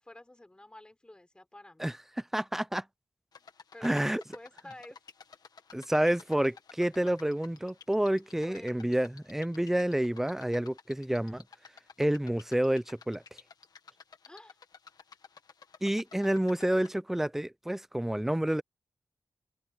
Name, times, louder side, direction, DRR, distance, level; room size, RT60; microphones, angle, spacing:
voice 1, 0.0-2.0 3.4-3.5 3.7-5.0 8.4-9.0 14.2-14.6, left 1 dB, 15° left, 5.4 m, -50 dB
voice 2, 2.3-2.8 3.8-4.2 5.7-11.4 12.0-13.2 15.8-18.6, right 1 dB, 5° right, 0.5 m, -29 dB
sound 1, 3.3-16.9, left 6 dB, 75° left, 1.4 m, -54 dB
wide cardioid pair, 175°, 7 cm